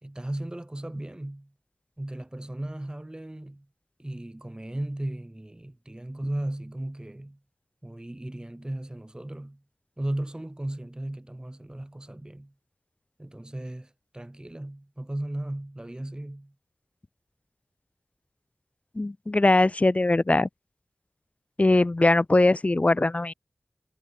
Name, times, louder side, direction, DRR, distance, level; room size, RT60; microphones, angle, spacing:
voice 1, 0.0-1.5 2.0-3.7 4.0-7.4 7.8-9.6 10.0-12.5 13.2-16.5, right 1 dB, 20° right, 3.8 m, -36 dB
voice 2, 18.9-20.5 21.6-23.3, left 2 dB, 40° left, 1.2 m, -21 dB
wide cardioid pair, 50°, 4 cm